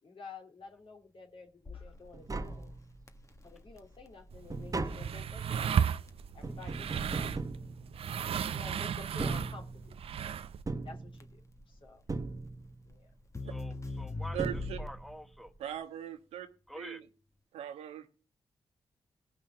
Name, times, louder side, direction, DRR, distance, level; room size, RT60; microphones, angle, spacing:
voice 1, 0.0-2.8 3.4-5.8 6.3-7.5 8.4-10.0 10.8-11.4 11.7-12.0 12.9-13.1, left 4 dB, 60° left, 3.0 m, -51 dB
Crackle, 1.6-15.2, left 3 dB, 30° left, 1.5 m, -45 dB
Tap, 1.9-2.0 2.1-3.2 3.7-8.4 9.0-10.1 10.7-11.6 12.1-12.9 13.9-14.0 14.4-15.2 15.5-15.6, right 3 dB, 35° right, 1.1 m, -39 dB
sound 1, 4.3-10.6, right 8 dB, 70° right, 0.6 m, -34 dB
voice 2, 13.4-15.5 16.7-17.0, equal, ahead, 1.8 m, -47 dB
voice 3, 14.3-14.8 15.6-16.5 16.8-17.0 17.5-18.1, right 11 dB, 90° right, 1.2 m, -39 dB
17.0 x 6.0 x 5.6 m
supercardioid pair, 40°, 10 cm